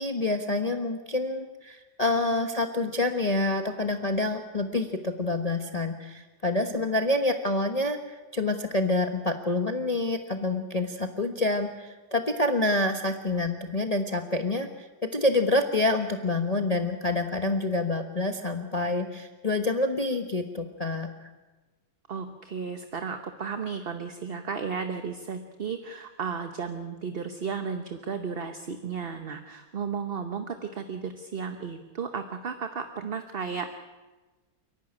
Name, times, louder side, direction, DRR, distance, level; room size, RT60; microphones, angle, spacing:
voice 1, 0.0-21.1, left 2 dB, 25° left, 5 dB, 1.1 m, -27 dB
voice 2, 22.1-33.7, right 6 dB, 40° right, 7 dB, 1.1 m, -34 dB
29.5 x 11.0 x 9.9 m, 1.2 s
omnidirectional pair, 1.9 m